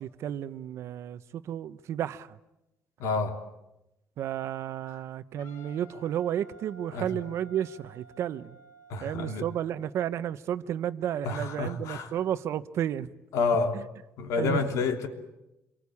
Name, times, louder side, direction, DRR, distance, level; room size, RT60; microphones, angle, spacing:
voice 1, 0.0-2.4 4.2-8.6 9.0-13.1 13.7-13.8 14.4-14.6, right 10 dB, 60° right, 14 dB, 1.0 m, -32 dB
voice 2, 3.0-3.4 6.9-7.1 8.9-9.4 11.2-12.1 13.3-13.8 14.2-15.1, left 4 dB, 85° left, 6 dB, 3.1 m, -28 dB
Wind instrument woodwind instrument, 5.4-9.8, right 2 dB, 60° left, 4.9 m, -53 dB
27.5 x 23.5 x 8.5 m, 0.92 s
cardioid pair, 165°, 5 cm